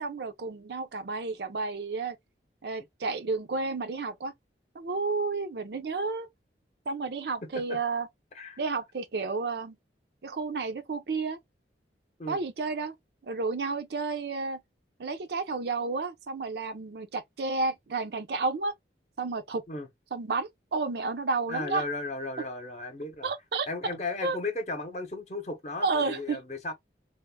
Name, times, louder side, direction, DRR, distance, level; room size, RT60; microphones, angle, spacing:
voice 1, 0.0-2.2 2.6-4.3 4.8-6.3 6.9-8.1 8.6-9.8 10.2-11.4 12.3-12.9 13.3-14.6 15.0-18.7 19.2-19.6 20.1-21.8 23.2-23.7 24.2-24.4 25.8-26.4, right 4 dB, 65° right, 0.5 m, -31 dB
voice 2, 21.5-23.3 23.7-26.7, left 2 dB, 40° left, 0.8 m, -35 dB
3.4 x 2.0 x 2.2 m
head